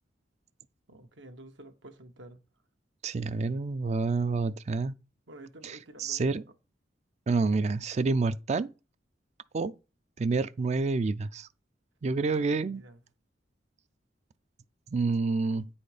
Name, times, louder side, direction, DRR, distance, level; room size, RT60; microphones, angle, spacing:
voice 1, 0.9-2.4 5.3-6.3 12.3-13.0, right 1 dB, 85° right, 1.2 m, -50 dB
voice 2, 3.0-4.9 5.6-6.4 7.3-8.7 9.5-9.7 10.2-11.5 12.0-12.8 14.9-15.7, right 4 dB, 40° right, 0.4 m, -28 dB
9.3 x 4.3 x 5.0 m
head